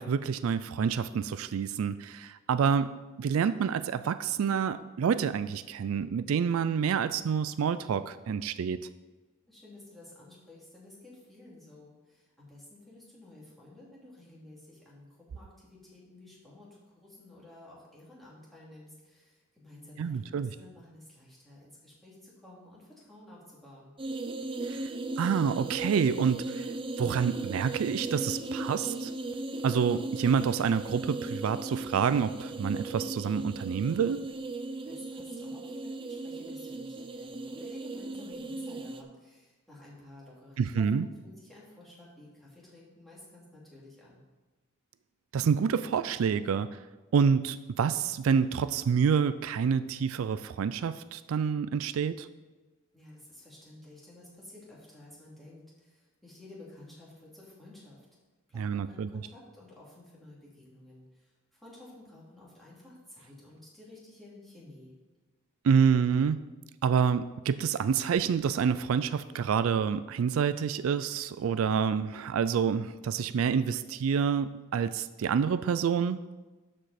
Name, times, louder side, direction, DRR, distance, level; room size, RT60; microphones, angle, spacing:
voice 1, 0.0-8.8 20.0-20.5 24.7-24.9 25.2-26.7 27.0-29.1 29.6-34.2 40.6-41.1 45.3-46.8 47.1-52.3 58.6-59.1 65.6-66.4 66.8-76.2, right 6 dB, 85° right, 14 dB, 0.3 m, -28 dB
voice 2, 9.5-15.1 15.3-23.9 34.9-44.2 52.9-58.1 58.5-64.9, left 1 dB, ahead, -7 dB, 2.8 m, -52 dB
sound 1, 24.0-39.0, right 2 dB, 25° right, 0.5 m, -37 dB
12.0 x 5.1 x 4.3 m, 1.2 s
head